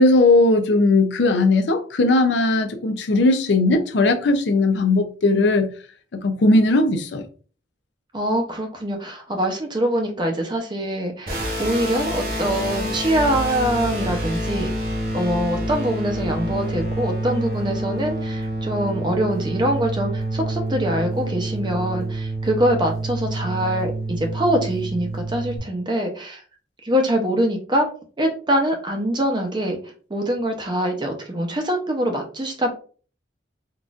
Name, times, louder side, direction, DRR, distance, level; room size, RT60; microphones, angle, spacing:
voice 1, 0.0-5.7 6.1-7.2, left 2 dB, 70° left, 0.5 m, -18 dB
voice 2, 8.1-14.7 15.1-26.4 26.8-27.9 28.2-29.8 30.1-32.7, right 1 dB, 25° right, 0.6 m, -24 dB
sound 1, 11.3-25.6, right 1 dB, 50° right, 1.0 m, -27 dB
3.9 x 2.4 x 2.4 m
head